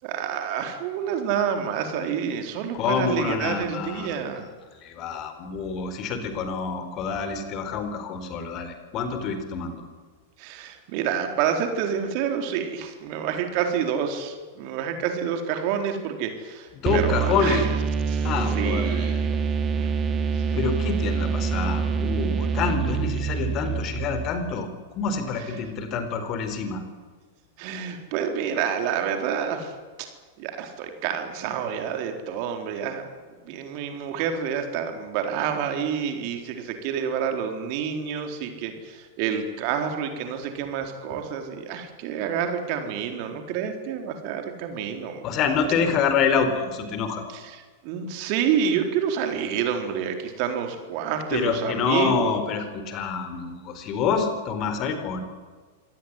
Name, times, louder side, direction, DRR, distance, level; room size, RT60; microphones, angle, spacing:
voice 1, 0.0-4.4 10.4-17.7 18.1-19.4 19.7-19.9 20.3-20.4 25.4-25.7 27.6-29.7 30.4-33.1 33.4-45.2 47.3-52.4, right 8 dB, 50° right, 5 dB, 4.2 m, -28 dB
voice 2, 2.8-4.1 4.8-9.8 16.8-17.7 18.2-19.1 20.5-24.7 24.9-26.8 45.2-47.2 51.3-55.2, left 5 dB, 40° left, 9 dB, 4.2 m, -27 dB
sound 1, 16.9-24.5, right 6 dB, 25° right, 2.9 m, -26 dB
26.0 x 18.0 x 9.8 m, 1.4 s
figure-of-eight pair, 95°, 0 cm